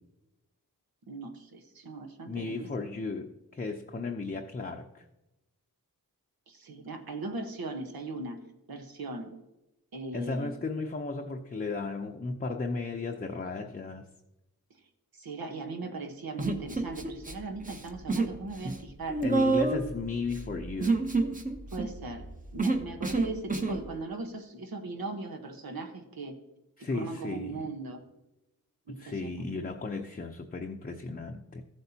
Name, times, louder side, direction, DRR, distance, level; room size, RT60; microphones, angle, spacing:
voice 1, 1.1-2.7 6.5-8.4 8.7-9.3 9.9-10.5 15.1-19.2 21.7-22.3 22.5-26.4 26.8-28.0 28.9-29.6, right 3 dB, 80° right, 5 dB, 1.2 m, -39 dB
voice 2, 2.3-5.0 10.1-14.1 19.2-21.0 26.8-27.7 28.9-31.6, left 3 dB, 25° left, 2 dB, 0.6 m, -35 dB
Human voice, 16.4-17.3 17.6-18.4 18.6-23.8, right 3 dB, 25° right, 0.9 m, -28 dB
14.5 x 7.9 x 2.8 m, 0.96 s
wide cardioid pair, 85°, 36 cm